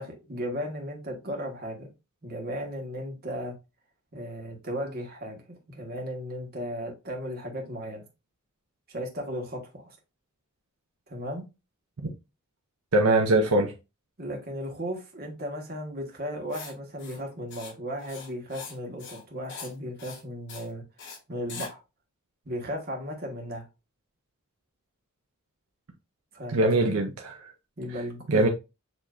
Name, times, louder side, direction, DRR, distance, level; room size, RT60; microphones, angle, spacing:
voice 1, 0.0-1.9 2.2-3.5 4.1-8.0 8.9-9.9 11.1-11.4 14.2-20.8 21.3-21.8 22.4-23.6 26.3-26.9 27.8-28.5, equal, 45° right, 1.6 m, -35 dB
voice 2, 12.9-13.7 26.5-27.5 28.3-28.5, right 2 dB, 75° right, 0.7 m, -22 dB
Writing, 16.5-16.7 17.0-17.2 17.5-17.7 18.0-18.7 19.0-19.2 19.5-19.7 20.0-20.2 20.5-20.7 21.0-21.2 21.5-21.7, left 5 dB, 55° left, 2.5 m, -42 dB
7.0 x 3.0 x 2.5 m
head